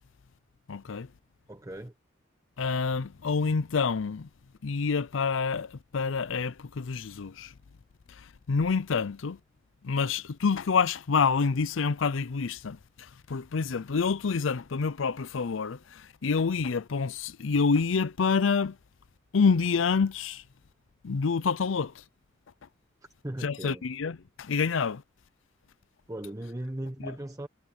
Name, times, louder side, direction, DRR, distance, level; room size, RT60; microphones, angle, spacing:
voice 1, 0.7-1.1 2.6-4.3 4.6-7.5 8.1-9.4 9.8-18.8 19.3-20.4 21.0-22.0 23.4-25.0 27.0-27.1, left 5 dB, 85° left, 0.6 m, -27 dB
voice 2, 1.5-1.9 23.2-23.8 26.1-27.5, right 1 dB, 15° right, 1.1 m, -37 dB
head